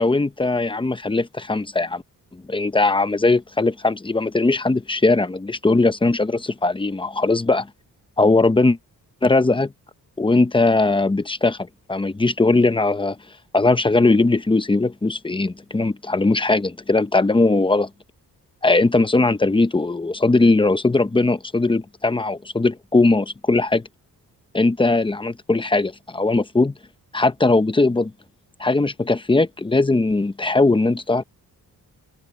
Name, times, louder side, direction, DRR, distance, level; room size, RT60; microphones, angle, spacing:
voice 1, 0.0-2.0 2.3-7.7 8.2-8.8 9.2-9.7 10.2-13.2 13.5-17.9 18.6-23.9 24.5-26.7 27.1-28.1 28.6-31.2, left 3 dB, 15° left, 0.8 m, -19 dB
cardioid pair, 110°, 37 cm